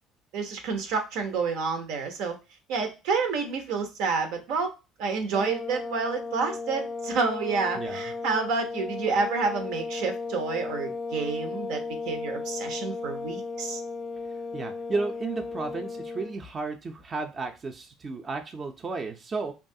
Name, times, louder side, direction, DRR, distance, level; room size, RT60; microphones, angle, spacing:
voice 1, 0.3-2.4 2.7-4.7 5.0-13.8, right 4 dB, 75° right, 6 dB, 0.7 m, -29 dB
sound 1, 5.3-16.4, left 4 dB, 15° left, 0.6 m, -35 dB
voice 2, 14.5-19.5, right 3 dB, 35° right, 5 dB, 0.5 m, -33 dB
3.0 x 2.3 x 2.6 m, 0.28 s
supercardioid pair, 85°, 0 cm